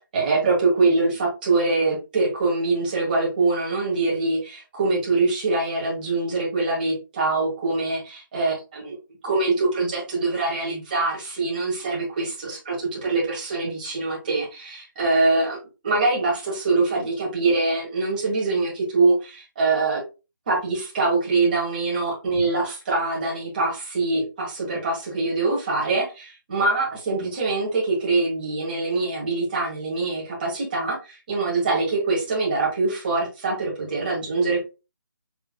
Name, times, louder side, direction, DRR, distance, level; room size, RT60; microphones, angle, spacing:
voice 1, 0.1-9.0 9.2-15.6 15.8-20.0 20.5-34.6, right 3 dB, 25° right, -4 dB, 1.7 m, -24 dB
5.8 x 3.3 x 2.2 m, 0.29 s
hypercardioid pair, 170°, 11 cm